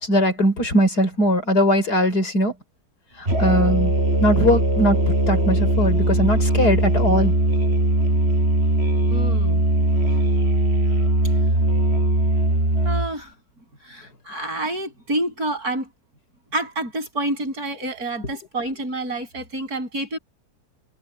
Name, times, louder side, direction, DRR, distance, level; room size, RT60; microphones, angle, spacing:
voice 1, 0.0-2.5 3.2-3.9 4.2-7.3, equal, 80° left, 5.7 m, -20 dB
Musical instrument, 3.3-13.1, right 1 dB, 40° right, 8.1 m, -20 dB
voice 2, 9.1-9.6 12.8-13.3 13.8-15.9 16.5-20.2, right 1 dB, 70° right, 8.1 m, -28 dB
omnidirectional pair, 1.7 m